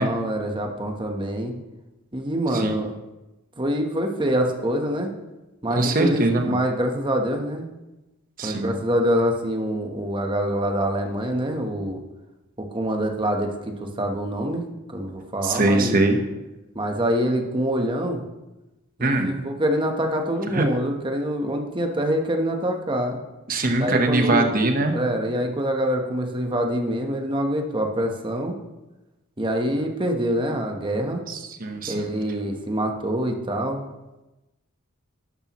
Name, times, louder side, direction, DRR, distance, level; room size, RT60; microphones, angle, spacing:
voice 1, 0.0-1.5 2.1-2.9 3.6-5.1 5.6-7.7 8.4-12.0 12.6-16.0 16.7-18.2 19.0-23.2 23.8-24.5 24.9-28.6 29.4-31.3 31.9-33.9, equal, 25° right, 3 dB, 1.1 m, -25 dB
voice 2, 5.7-6.5 8.4-8.8 15.4-16.2 19.0-19.3 20.5-20.7 23.5-24.9 31.3-32.1, right 2 dB, 40° right, 5 dB, 1.1 m, -22 dB
12.0 x 11.0 x 3.1 m, 1.0 s
head